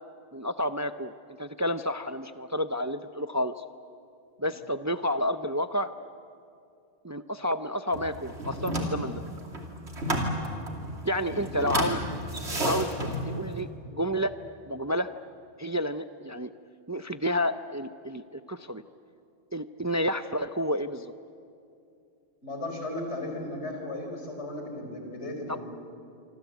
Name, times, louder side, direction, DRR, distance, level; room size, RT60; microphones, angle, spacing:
voice 1, 0.3-3.6 4.4-5.9 7.0-9.2 11.0-12.0 12.6-14.3 14.7-15.1 15.6-16.5 16.9-18.8 19.5-21.1 25.5-25.6, equal, 20° right, 10 dB, 0.5 m, -30 dB
sound 1, 7.9-13.6, right 1 dB, 75° right, 3.1 m, -32 dB
voice 2, 11.6-12.0 22.4-25.6, left 1 dB, 90° left, 3 dB, 4.9 m, -36 dB
26.0 x 26.0 x 8.3 m, 2.5 s
omnidirectional pair, 1.1 m